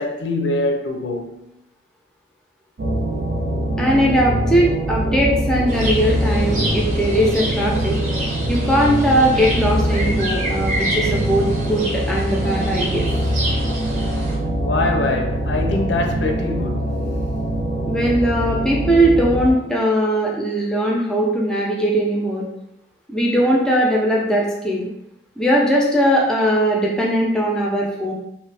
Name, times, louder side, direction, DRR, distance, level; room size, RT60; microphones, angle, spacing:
voice 1, 0.0-1.4 14.6-17.1, left 2 dB, 85° left, 0.5 m, -23 dB
sound 1, 2.8-19.5, right 1 dB, 75° right, 0.5 m, -23 dB
voice 2, 3.8-8.0 8.5-13.1 17.9-22.5 23.1-24.9 25.4-28.1, equal, 5° left, 0.5 m, -19 dB
sound 2, 5.7-14.4, right 1 dB, 40° right, 0.7 m, -28 dB
2.6 x 2.5 x 3.3 m
head